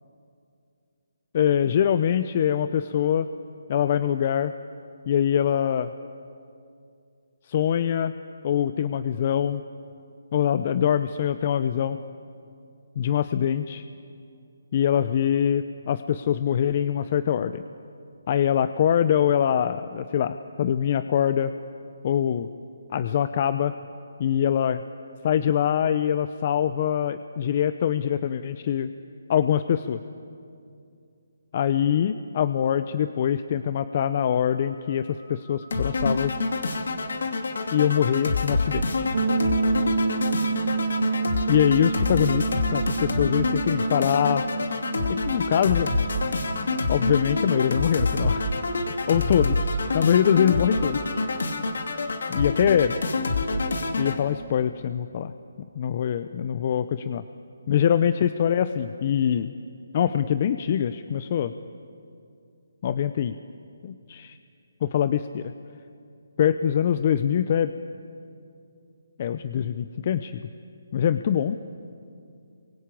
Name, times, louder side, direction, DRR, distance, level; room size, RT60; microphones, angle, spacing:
voice 1, 1.3-3.3 3.7-4.5 5.1-5.9 7.4-8.1 8.4-9.6 10.3-12.0 13.0-13.8 14.7-17.6 18.3-21.5 22.0-22.5 22.9-23.7 24.2-24.8 25.2-28.9 29.3-30.0 31.5-36.3 37.7-39.1 41.5-44.5 45.1-45.9 46.9-48.5 49.1-49.5 49.9-51.0 51.2-51.6 52.3-53.0 54.0-55.3 55.7-57.2 57.7-59.5 59.9-61.5 62.8-63.4 63.8-64.4 64.8-65.5 66.4-67.7 69.2-70.4 70.9-71.6, left 9 dB, 40° left, 12 dB, 0.7 m, -23 dB
sound 1, 34.0-52.4, equal, 15° right, 3.6 m, -47 dB
sound 2, 35.7-54.2, left 3 dB, 70° left, 2.7 m, -27 dB
sound 3, 39.1-48.8, right 4 dB, 65° right, 1.4 m, -29 dB
26.5 x 24.0 x 8.6 m, 2.5 s
hypercardioid pair, 160°, 0 cm